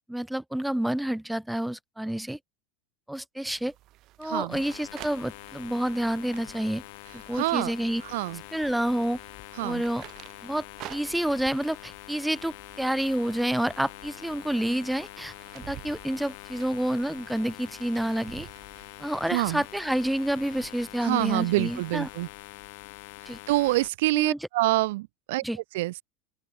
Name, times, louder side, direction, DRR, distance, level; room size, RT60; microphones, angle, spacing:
voice 1, 0.1-2.4 3.1-3.7 4.2-6.8 7.1-8.0 8.5-9.2 9.6-10.0 10.4-18.5 19.0-22.1 23.3-23.4 24.1-24.4 25.4-25.6, right 1 dB, 5° right, 0.8 m, -29 dB
sound 1, 3.5-20.3, right 16 dB, 50° right, 2.0 m, -51 dB
voice 2, 4.2-4.6 7.3-7.7 8.0-8.4 9.6-9.8 19.3-19.6 21.0-22.3 23.2-25.4 25.7-26.0, right 20 dB, 65° right, 0.5 m, -26 dB
sound 2, 4.5-23.9, left 30 dB, 60° left, 3.5 m, -45 dB
open air
hypercardioid pair, 80°, 0 cm